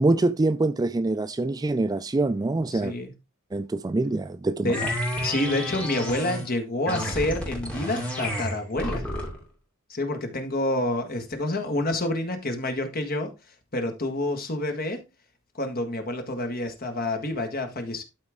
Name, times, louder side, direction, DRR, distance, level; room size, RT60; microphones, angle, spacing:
voice 1, 0.0-2.9 3.5-4.9, right 2 dB, 15° right, 0.3 m, -25 dB
voice 2, 2.7-3.1 4.6-4.8 5.2-9.1 9.9-13.3 13.7-15.0 15.5-18.0, left 1 dB, 45° left, 1.6 m, -28 dB
sound 1, 4.7-6.5 6.8-9.4, equal, 5° left, 2.5 m, -30 dB
12.0 x 4.4 x 3.6 m
head